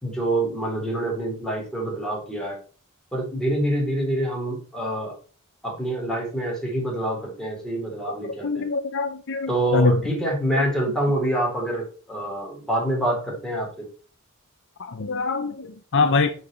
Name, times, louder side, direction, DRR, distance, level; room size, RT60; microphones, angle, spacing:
voice 1, 0.0-2.6 3.1-5.1 5.6-8.7 9.5-13.7, right 1 dB, 5° left, 3.7 m, -26 dB
voice 2, 8.4-10.0 14.8-16.3, left 3 dB, 60° left, 0.7 m, -23 dB
7.6 x 4.8 x 6.8 m
head